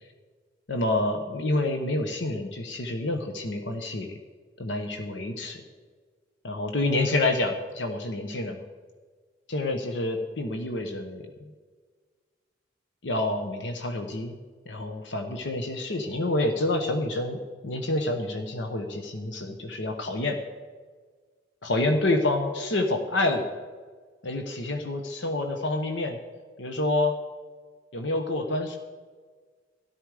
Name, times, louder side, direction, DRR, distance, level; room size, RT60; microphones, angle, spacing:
voice 1, 0.7-4.2 4.6-5.6 6.4-8.6 9.5-11.5 13.0-14.4 14.7-20.4 21.6-23.5 24.2-26.2 26.6-27.1 27.9-28.8, left 2 dB, 70° left, 5 dB, 1.0 m, -28 dB
13.0 x 12.0 x 4.9 m, 1.5 s
head